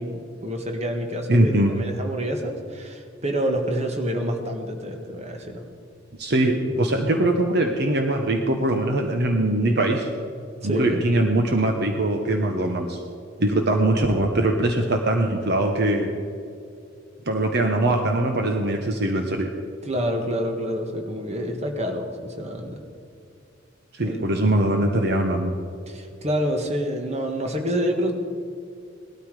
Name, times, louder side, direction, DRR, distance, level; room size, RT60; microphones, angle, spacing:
voice 1, 0.0-5.6 10.6-11.0 19.8-22.8 24.0-24.8 25.9-28.1, equal, 35° right, 3 dB, 1.6 m, -28 dB
voice 2, 1.3-1.7 6.2-10.1 10.6-13.0 13.4-16.1 17.3-19.5 23.9-25.5, right 1 dB, 55° right, 4 dB, 1.1 m, -22 dB
18.5 x 13.0 x 4.9 m, 2.4 s
head